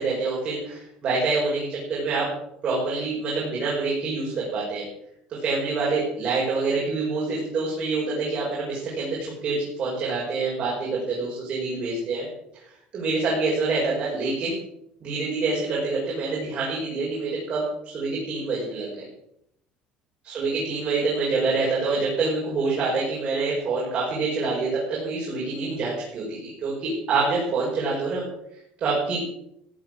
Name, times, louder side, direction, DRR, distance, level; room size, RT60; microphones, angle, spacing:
voice 1, 0.0-2.3 2.6-4.8 5.4-12.3 12.9-14.6 15.0-19.1 20.2-28.2 28.8-29.2, right 3 dB, 35° right, -5 dB, 5.6 m, -26 dB
15.5 x 11.5 x 6.4 m, 0.77 s
cardioid pair, 175°, 3 cm